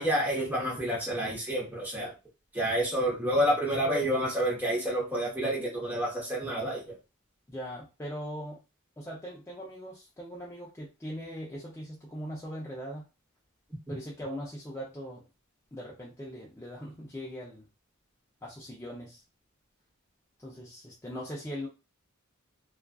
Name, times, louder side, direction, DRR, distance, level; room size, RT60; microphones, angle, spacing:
voice 1, 0.0-2.1 2.5-6.9, equal, 10° right, -4 dB, 0.9 m, -29 dB
voice 2, 7.5-8.6 9.0-13.1 13.9-15.2 15.7-17.6 18.4-19.2 20.4-21.7, equal, 15° left, -5 dB, 0.4 m, -40 dB
2.4 x 2.3 x 2.3 m, 0.28 s
head